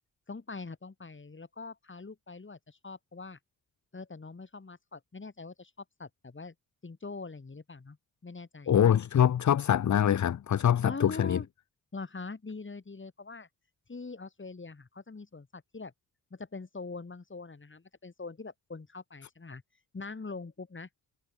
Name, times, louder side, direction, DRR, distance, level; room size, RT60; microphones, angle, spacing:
voice 1, 0.3-3.4 3.9-6.5 6.8-8.0 8.2-8.8 10.8-11.5 11.9-13.5 13.9-15.9 16.3-19.6 19.9-20.9, left 4 dB, 35° left, 4.3 m, -43 dB
voice 2, 8.7-11.4, left 9 dB, 60° left, 0.9 m, -24 dB
supercardioid pair, 45°, 33 cm